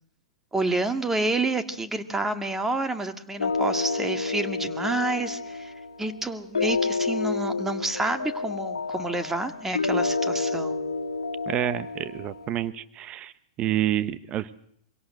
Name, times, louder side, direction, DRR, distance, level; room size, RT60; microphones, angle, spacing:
voice 1, 0.5-5.7 6.0-10.9, right 2 dB, 10° right, 9 dB, 2.1 m, -29 dB
sound 1, 3.4-12.6, left 4 dB, 90° left, 1.6 m, -29 dB
voice 2, 11.5-13.3 13.6-14.5, right 12 dB, 35° right, 15 dB, 1.2 m, -28 dB
25.5 x 17.5 x 7.8 m, 0.67 s
hypercardioid pair, 110°, 3 cm